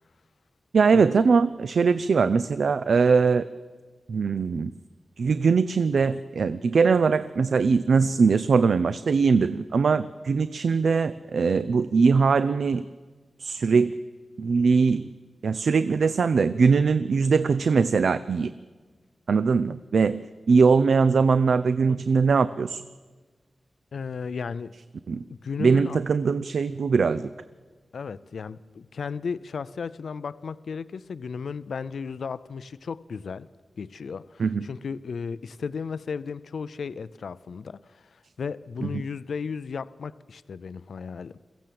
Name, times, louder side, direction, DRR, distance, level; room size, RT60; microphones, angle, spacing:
voice 1, 0.7-3.5 4.1-4.7 5.2-12.9 13.4-14.0 14.4-15.1 15.4-18.5 19.3-22.8 25.1-25.2 25.6-27.3 34.4-34.6 38.8-38.9, right 5 dB, 70° right, 14 dB, 0.5 m, -21 dB
voice 2, 23.9-24.7 25.3-26.0 27.9-33.5 33.8-41.4, left 5 dB, 85° left, 16 dB, 0.5 m, -35 dB
22.5 x 15.5 x 7.6 m, 1.4 s
wide cardioid pair, 155°, 0 cm